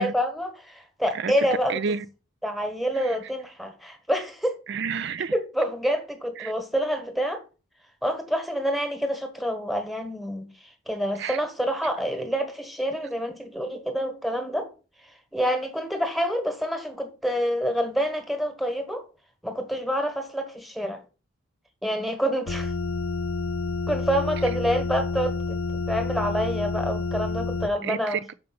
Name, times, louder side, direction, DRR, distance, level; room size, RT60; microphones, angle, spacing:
voice 1, 0.0-1.8 2.4-4.6 5.3-7.4 8.0-14.7 15.0-19.0 19.4-21.0 21.8-22.7 23.9-25.6 25.9-28.2, equal, ahead, 1.4 m, -27 dB
voice 2, 1.1-2.0 3.0-3.2 4.7-5.3 6.4-6.5 11.2-11.4 27.8-28.3, right 6 dB, 55° right, 0.4 m, -30 dB
sound 1, 22.5-27.7, left 3 dB, 85° left, 0.8 m, -29 dB
6.8 x 5.3 x 6.9 m
head